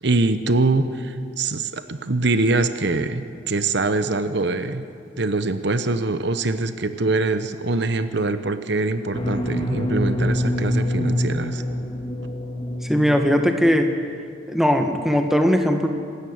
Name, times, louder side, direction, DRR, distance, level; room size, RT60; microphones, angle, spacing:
voice 1, 0.0-4.8 5.2-11.6, right 3 dB, 60° right, 10 dB, 1.0 m, -23 dB
sound 1, 9.1-13.7, left 1 dB, 30° left, 1.9 m, -25 dB
voice 2, 12.8-13.9 14.5-15.9, equal, ahead, 4 dB, 1.6 m, -19 dB
26.0 x 13.5 x 9.5 m, 2.3 s
head